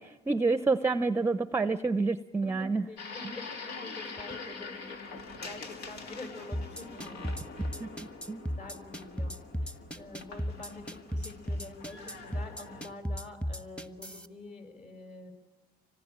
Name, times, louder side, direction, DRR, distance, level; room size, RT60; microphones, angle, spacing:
voice 1, 0.0-2.9 7.8-8.5, right 3 dB, 15° right, 13 dB, 0.7 m, -28 dB
voice 2, 2.4-7.8 8.6-9.4 9.6-15.3, left 2 dB, 45° left, 6 dB, 5.6 m, -46 dB
sound 1, 3.0-12.9, left 4 dB, 75° left, 3.0 m, -45 dB
sound 2, 6.5-14.3, equal, 5° left, 1.3 m, -34 dB
25.5 x 19.0 x 8.9 m, 1.4 s
cardioid pair, 110°, 17 cm